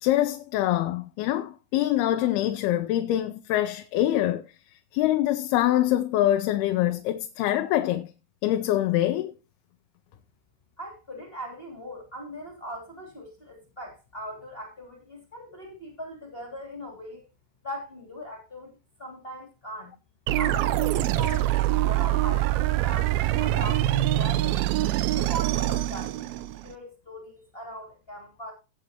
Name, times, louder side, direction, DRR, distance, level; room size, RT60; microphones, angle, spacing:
voice 1, 0.0-4.4 4.9-8.1 8.4-9.3, left 13 dB, 90° left, 2.7 m, -24 dB
voice 2, 10.8-17.2 17.6-18.7 19.0-19.9 20.3-24.6 25.1-28.5, equal, 15° left, 2.7 m, -39 dB
sound 1, 20.3-26.7, right 14 dB, 85° right, 2.6 m, -24 dB
18.0 x 7.8 x 2.9 m
omnidirectional pair, 4.4 m